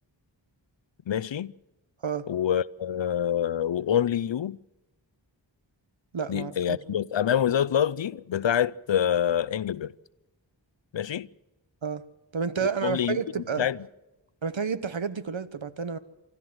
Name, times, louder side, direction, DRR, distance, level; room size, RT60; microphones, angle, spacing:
voice 1, 1.1-1.5 2.3-4.6 6.3-9.9 10.9-11.3 12.6-13.2 13.6-13.8, left 9 dB, 70° left, 0.6 m, -26 dB
voice 2, 6.1-7.0 11.8-12.0 12.3-13.7 14.4-16.0, right 6 dB, 75° right, 1.1 m, -30 dB
25.0 x 13.5 x 7.8 m
wide cardioid pair, 45°, 46 cm